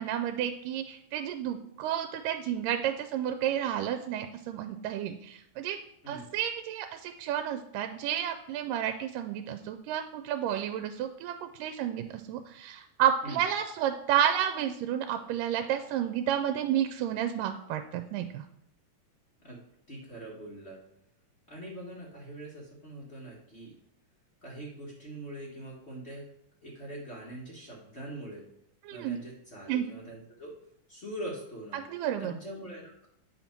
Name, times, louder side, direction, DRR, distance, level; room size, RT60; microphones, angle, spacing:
voice 1, 0.0-5.8 6.1-18.4 28.9-29.2 29.7-29.9 31.7-32.3, right 10 dB, 90° right, 7 dB, 2.2 m, -31 dB
voice 2, 19.9-20.8 21.5-23.7 24.4-26.2 26.6-28.4 28.9-30.6 30.9-31.8 32.2-33.1, right 1 dB, 60° left, -4 dB, 0.6 m, -43 dB
8.8 x 4.2 x 5.8 m, 0.73 s
omnidirectional pair, 3.8 m